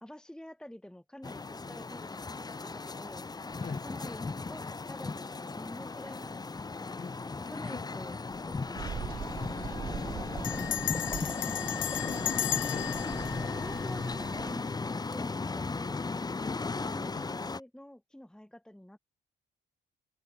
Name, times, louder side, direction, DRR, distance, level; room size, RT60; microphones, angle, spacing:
voice 1, 0.0-8.9 9.4-10.3 10.6-11.3 13.6-16.2 16.8-19.0, left 1 dB, 5° left, 1.7 m, -48 dB
sound 1, 1.2-17.6, left 3 dB, 20° left, 0.9 m, -36 dB
Bell, 8.3-8.7 9.0-9.1 9.3-9.7 10.4-14.5, left 13 dB, 70° left, 0.9 m, -35 dB
sound 2, 8.8-14.5, right 7 dB, 45° right, 1.8 m, -42 dB
voice 2, 11.9-13.2 17.1-17.3, left 6 dB, 40° left, 3.9 m, -44 dB
cardioid pair, 90°, 20 cm